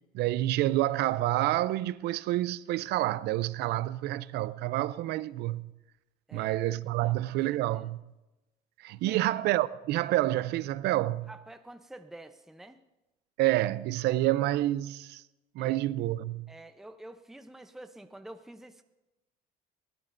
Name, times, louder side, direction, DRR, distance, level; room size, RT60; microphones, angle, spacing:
voice 1, 0.1-5.7 6.3-8.0 8.8-11.3 13.4-15.2 15.6-16.5, right 15 dB, 80° right, 0.5 m, -28 dB
voice 2, 6.3-6.6 7.0-7.9 9.1-9.2 11.3-12.8 15.6-15.8 16.5-18.8, right 1 dB, ahead, 0.7 m, -48 dB
23.0 x 16.5 x 2.6 m
cardioid pair, 110°, 17 cm